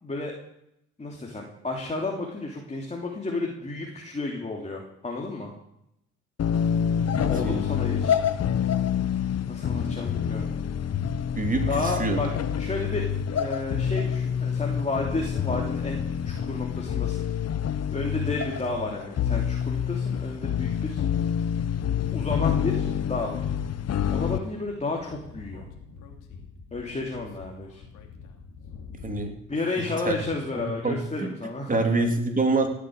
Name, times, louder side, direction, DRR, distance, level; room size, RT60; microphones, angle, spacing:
voice 1, 0.0-0.3 1.0-5.5 7.3-8.2 9.5-10.5 11.7-12.3 12.5-13.0 13.3-17.3 17.9-21.0 22.1-23.5 24.1-25.7 26.7-27.8 29.5-31.7, left 3 dB, 20° left, -1 dB, 3.3 m, -32 dB
sound 1, 6.4-24.4, left 8 dB, 55° left, 1.1 m, -27 dB
voice 2, 7.2-7.7 11.4-12.2 29.0-30.1 30.8-31.3 31.7-32.7, right 2 dB, 25° right, 4 dB, 3.4 m, -26 dB
Speech / Wind, 24.5-29.4, left 5 dB, 90° left, 2.9 m, -46 dB
18.0 x 8.8 x 8.8 m, 0.80 s
cardioid pair, 90°, 30 cm